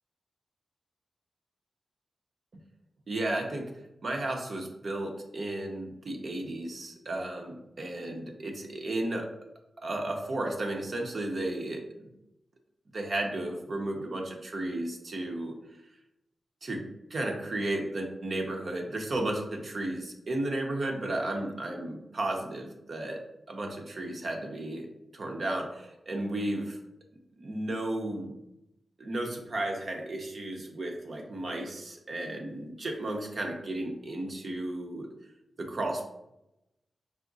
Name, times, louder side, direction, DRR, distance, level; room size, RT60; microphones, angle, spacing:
voice 1, 3.1-3.7 4.0-9.3 9.8-12.1 12.9-15.5 16.6-24.9 25.1-26.8 27.4-28.3 29.0-35.1 35.6-36.0, right 1 dB, 60° right, 2 dB, 0.8 m, -34 dB
4.8 x 2.1 x 3.9 m, 0.87 s
cardioid pair, 55°, 0 cm